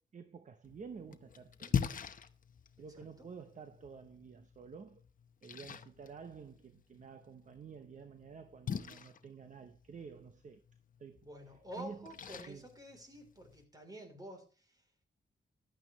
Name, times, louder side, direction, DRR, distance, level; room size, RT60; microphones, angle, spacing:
voice 1, 0.0-1.9 2.8-5.0 5.4-10.6 11.0-11.3 11.7-12.1 12.5-12.7, right 6 dB, 40° right, 0.9 m, -50 dB
Splash splatter, 0.6-13.6, left 7 dB, 45° left, 0.9 m, -43 dB
voice 2, 2.8-3.3 11.2-14.8, equal, 20° right, 3.4 m, -50 dB
15.0 x 11.5 x 3.1 m
wide cardioid pair, 160°, 19 cm